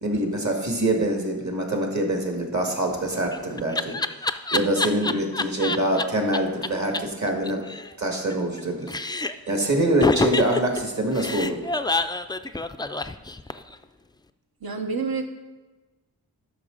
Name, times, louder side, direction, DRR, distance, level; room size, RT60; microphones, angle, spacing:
voice 1, 0.0-4.0 4.5-7.6 8.0-8.9 9.5-11.6, right 1 dB, 45° right, 2 dB, 1.8 m, -25 dB
Laughter, 2.9-6.0 6.3-6.4 6.6-6.7 6.9-7.0 7.3-8.6 8.9-9.5 10.0-13.8, left 2 dB, 10° left, 0.3 m, -27 dB
voice 2, 14.6-15.3, right 4 dB, 65° right, 5 dB, 1.1 m, -28 dB
12.5 x 5.7 x 3.9 m, 1.2 s
wide cardioid pair, 65°, 39 cm